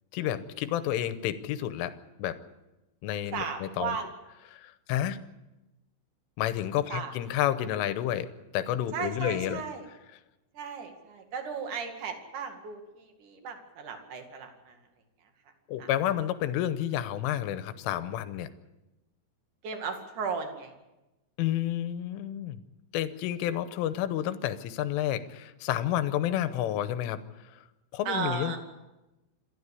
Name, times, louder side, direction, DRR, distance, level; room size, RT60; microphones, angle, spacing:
voice 1, 0.1-2.4 3.0-4.0 4.5-5.2 6.4-8.3 8.5-9.6 15.7-18.5 21.4-22.6 22.9-27.6 27.9-28.6, left 12 dB, 85° left, 12 dB, 3.5 m, -30 dB
voice 2, 3.3-4.1 6.9-7.1 8.9-9.9 10.5-14.8 15.8-15.9 19.6-20.7 28.0-28.6, right 6 dB, 50° right, 5 dB, 3.2 m, -35 dB
27.5 x 13.0 x 8.4 m, 1.0 s
omnidirectional pair, 5.6 m